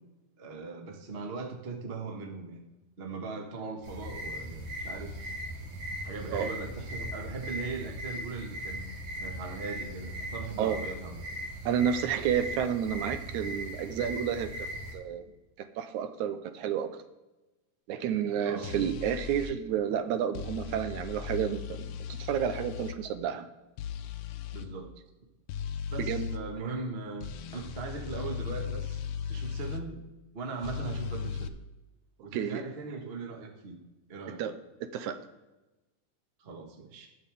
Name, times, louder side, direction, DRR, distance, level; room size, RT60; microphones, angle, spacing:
voice 1, 0.4-2.6 3.0-5.3 6.0-8.9 9.2-11.2 18.4-18.8 24.5-24.9 25.9-29.0 29.3-30.0 30.3-31.5 32.2-33.8 34.1-34.4 36.4-37.1, right 4 dB, 35° right, 3 dB, 0.9 m, -39 dB
sound 1, 3.8-14.9, equal, 55° right, 3.1 m, -39 dB
voice 2, 11.7-15.2 15.6-16.9 17.9-21.9 22.2-23.4 26.0-26.3 32.3-32.6 34.4-34.5 34.8-35.2, right 9 dB, 85° right, 10 dB, 2.2 m, -30 dB
sound 2, 18.6-19.5 20.3-23.0 23.8-24.7 25.5-26.4 27.2-29.8 30.6-31.5, left 7 dB, 85° left, 1.2 m, -37 dB
19.5 x 6.7 x 3.5 m, 1.1 s
omnidirectional pair, 3.4 m